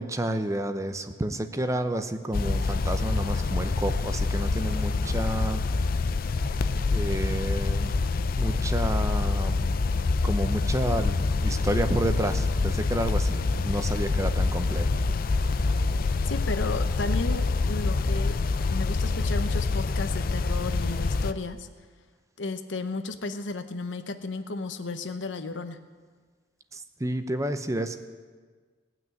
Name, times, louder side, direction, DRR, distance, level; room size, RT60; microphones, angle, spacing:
voice 1, 0.0-5.6 6.9-8.0 8.4-9.8 10.2-14.9 26.7-28.0, right 1 dB, 15° right, 9 dB, 0.7 m, -30 dB
sound 1, 2.3-21.3, left 3 dB, 50° left, 0.5 m, -26 dB
voice 2, 16.2-18.4 18.7-21.7 22.4-25.8, left 3 dB, 85° left, 9 dB, 0.9 m, -33 dB
18.0 x 6.1 x 9.0 m, 1.5 s
head